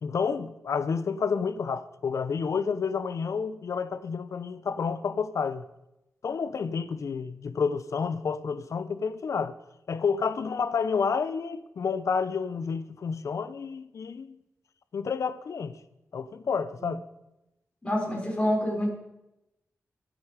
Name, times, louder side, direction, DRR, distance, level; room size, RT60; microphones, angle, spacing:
voice 1, 0.0-5.6 6.2-9.6 9.9-14.4 14.9-15.8 16.1-17.0, left 5 dB, 70° left, 0.8 m, -30 dB
voice 2, 17.8-18.9, equal, 20° left, 4.9 m, -27 dB
22.5 x 7.9 x 5.0 m
wide cardioid pair, 115°, 5 cm